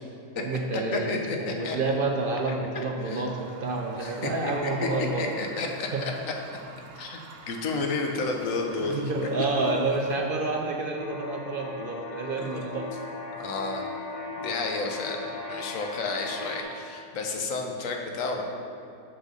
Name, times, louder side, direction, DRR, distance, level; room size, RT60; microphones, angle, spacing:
voice 1, 0.3-5.3 5.9-6.0 8.9-12.9, right 3 dB, 55° right, 1 dB, 0.6 m, -29 dB
voice 2, 0.9-1.8 2.7-3.3 4.0-4.9 5.2-6.1 7.0-9.0 9.9-10.0 12.4-12.6 13.4-13.8 14.4-18.4, left 3 dB, 85° left, 2 dB, 1.2 m, -31 dB
sound 1, 3.2-10.2, right 5 dB, 70° right, 1.0 m, -47 dB
sound 2, 11.0-16.6, left 3 dB, 65° left, 1.2 m, -38 dB
6.5 x 6.3 x 3.9 m, 2.6 s
omnidirectional pair, 1.4 m